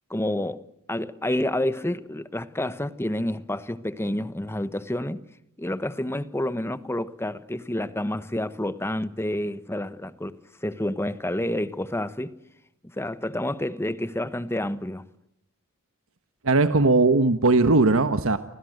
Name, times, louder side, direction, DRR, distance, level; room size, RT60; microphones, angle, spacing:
voice 1, 0.1-5.2 5.6-12.4 13.0-15.0, left 1 dB, 10° left, 1.2 m, -29 dB
voice 2, 16.4-18.4, right 3 dB, 65° right, 1.4 m, -19 dB
30.0 x 24.5 x 8.0 m
head